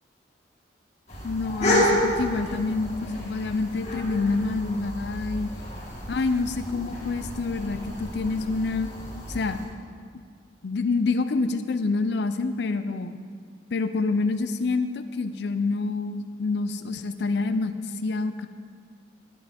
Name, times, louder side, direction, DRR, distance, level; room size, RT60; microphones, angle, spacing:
sound 1, 1.1-9.7, left 1 dB, 35° left, 2.0 m, -30 dB
voice 1, 1.2-5.5 6.1-8.9 9.3-9.6 10.6-13.2 13.7-18.5, left 3 dB, 60° left, 10 dB, 0.4 m, -27 dB
10.5 x 8.7 x 3.5 m, 2.1 s
head